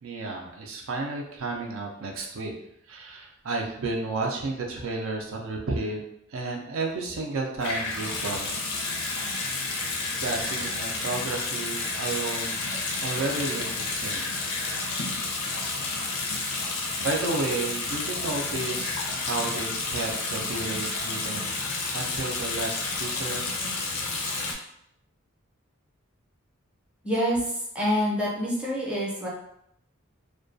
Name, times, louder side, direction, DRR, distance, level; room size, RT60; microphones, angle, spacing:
voice 1, 0.0-2.5 2.9-6.0 6.3-8.7 9.8-12.7 13.0-14.3 17.0-23.4, right 3 dB, 65° right, 0 dB, 0.4 m, -32 dB
Water tap faucet / Sink (filling or washing) / Bathtub (filling or washing), 7.6-24.5, left 3 dB, 80° left, 0.5 m, -30 dB
voice 2, 27.0-29.3, equal, 5° right, -5 dB, 0.6 m, -26 dB
2.3 x 2.2 x 2.5 m, 0.75 s
head